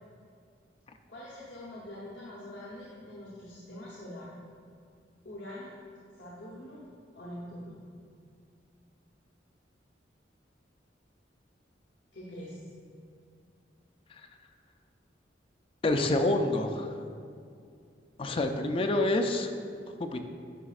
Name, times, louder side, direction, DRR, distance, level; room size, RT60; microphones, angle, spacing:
voice 1, 1.1-4.3 5.2-5.7 6.2-6.8 7.1-7.8 12.1-12.6, left 1 dB, 70° left, -6 dB, 0.9 m, -44 dB
voice 2, 15.8-16.9 18.2-19.5 20.0-20.2, left 2 dB, 30° left, 6 dB, 0.4 m, -27 dB
9.9 x 5.1 x 2.4 m, 2.3 s
head